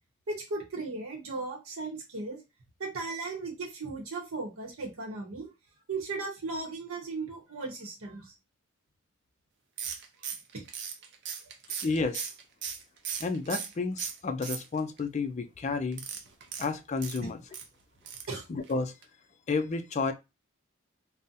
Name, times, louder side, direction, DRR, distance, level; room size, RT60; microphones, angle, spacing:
voice 1, 0.3-2.4 2.8-5.5 5.9-8.3 10.5-10.6 17.2-17.3 18.3-18.4, right 3 dB, 80° right, 0.8 m, -36 dB
sound 1, 9.8-13.7 14.0-15.0 15.9-17.7 18.0-18.4 18.6-18.7 19.0-19.1, right 7 dB, 55° right, 0.5 m, -38 dB
voice 2, 11.8-12.3 13.2-16.0 16.6-17.4 18.5-18.9 19.5-20.1, left 4 dB, 35° left, 0.4 m, -31 dB
3.7 x 2.0 x 2.6 m
head